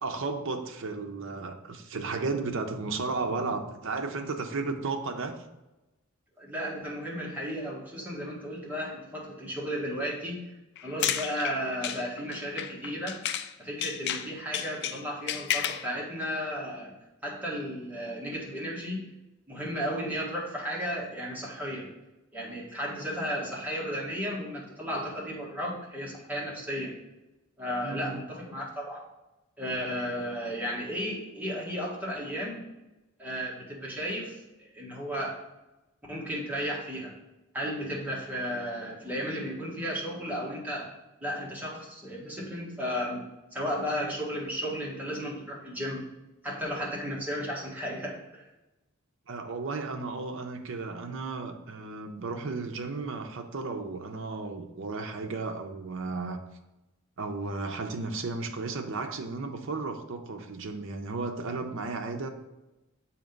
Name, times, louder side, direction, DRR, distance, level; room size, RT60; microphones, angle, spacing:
voice 1, 0.0-5.4 27.8-28.2 49.3-56.4 57.2-62.3, right 3 dB, 60° right, 5 dB, 0.6 m, -34 dB
voice 2, 6.4-10.5 10.8-13.2 13.6-16.9 17.2-19.1 19.5-21.9 22.3-27.0 27.6-29.1 29.6-32.6 33.2-35.4 36.1-37.1 37.5-40.9 41.2-46.1 46.4-48.4, equal, 10° right, -5 dB, 1.4 m, -34 dB
sound 1, 10.8-13.5 13.8-15.9, left 10 dB, 50° left, 0.3 m, -32 dB
7.4 x 2.9 x 5.1 m, 1.0 s
head